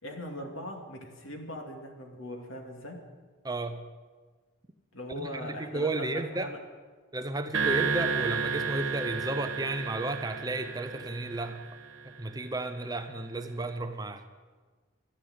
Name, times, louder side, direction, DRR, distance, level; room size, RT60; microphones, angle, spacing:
voice 1, 0.0-3.0 4.9-6.6, equal, 75° left, 2 dB, 2.4 m, -40 dB
voice 2, 3.4-3.8 5.1-6.5 7.1-11.6 12.0-14.2, right 2 dB, 20° right, 8 dB, 0.7 m, -33 dB
sound 1, 7.5-12.0, right 5 dB, 65° right, 1.8 m, -32 dB
13.0 x 11.0 x 7.9 m, 1.4 s
head